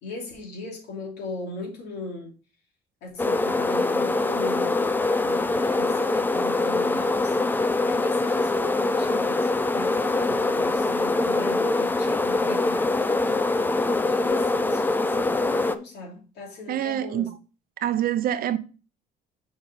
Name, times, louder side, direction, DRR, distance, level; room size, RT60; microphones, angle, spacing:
voice 1, 0.0-2.3 3.0-5.0 5.2-13.4 13.9-17.3, left 2 dB, 80° left, 2.9 m, -38 dB
sound 1, 3.2-15.8, left 2 dB, 10° left, 0.5 m, -23 dB
voice 2, 16.7-17.3 17.8-18.6, right 11 dB, 60° right, 0.7 m, -25 dB
6.0 x 5.2 x 4.0 m
cardioid pair, 110°, 17 cm